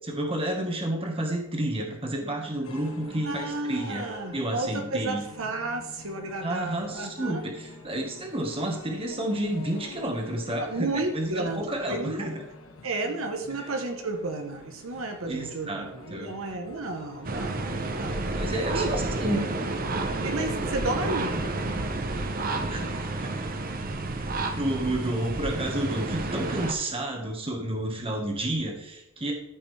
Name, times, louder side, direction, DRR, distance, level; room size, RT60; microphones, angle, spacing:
voice 1, 0.1-4.1 4.3-5.2 6.4-12.4 13.5-13.7 15.2-16.3 18.3-19.5 22.6-23.5 24.6-29.3, right 1 dB, 25° right, 1 dB, 1.4 m, -31 dB
sound 1, 2.6-21.8, left 2 dB, 75° left, 1.2 m, -47 dB
voice 2, 3.2-7.4 10.6-12.3 12.8-18.9 20.2-21.4, right 2 dB, 75° right, 4 dB, 1.0 m, -32 dB
sound 2, 17.2-26.7, right 2 dB, 40° right, 0.7 m, -30 dB
13.5 x 5.7 x 3.3 m, 0.87 s
head